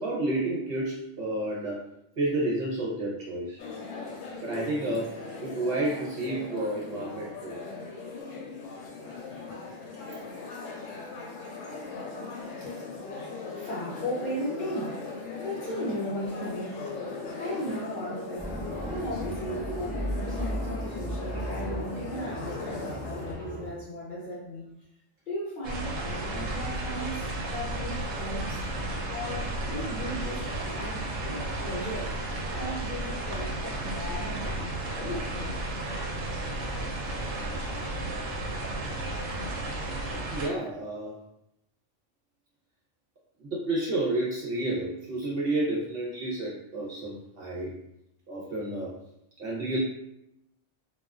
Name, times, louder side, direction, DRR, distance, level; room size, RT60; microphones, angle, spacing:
voice 1, 0.0-1.8 2.2-3.6 4.4-5.1 5.4-7.6 40.3-41.2 43.4-47.8 48.3-48.9 49.4-49.8, right 2 dB, 55° right, -5 dB, 0.8 m, -30 dB
sound 1, 3.6-23.3, left 4 dB, 85° left, 1.0 m, -39 dB
voice 2, 12.4-12.9 13.5-15.0 15.4-17.0 17.4-18.5 18.9-24.7 25.3-28.6 29.1-32.2 32.5-35.6, equal, 50° left, -6 dB, 0.8 m, -36 dB
sound 2, 18.4-23.7, equal, 15° right, 0.4 m, -35 dB
sound 3, 25.6-40.5, right 2 dB, 90° right, 1.0 m, -33 dB
2.3 x 2.3 x 2.2 m, 0.81 s
omnidirectional pair, 1.3 m